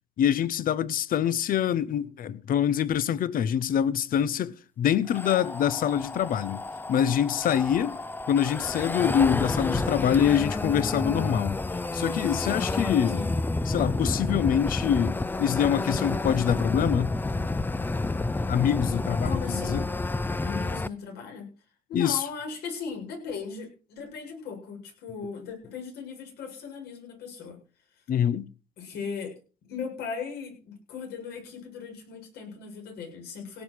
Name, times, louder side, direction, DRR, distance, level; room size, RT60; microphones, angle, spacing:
voice 1, 0.2-6.6 6.9-8.0 8.3-11.6 11.9-13.2 13.7-17.1 18.5-19.8 21.9-22.3 28.1-28.5, left 9 dB, 55° left, 1.0 m, -25 dB
sound 1, 5.1-20.9, left 2 dB, 10° left, 0.6 m, -30 dB
voice 2, 19.2-19.8 20.4-21.5 21.9-27.6 28.8-29.4 29.7-33.6, left 5 dB, 75° left, 7.6 m, -38 dB
17.5 x 7.5 x 6.5 m
cardioid pair, 110°, 17 cm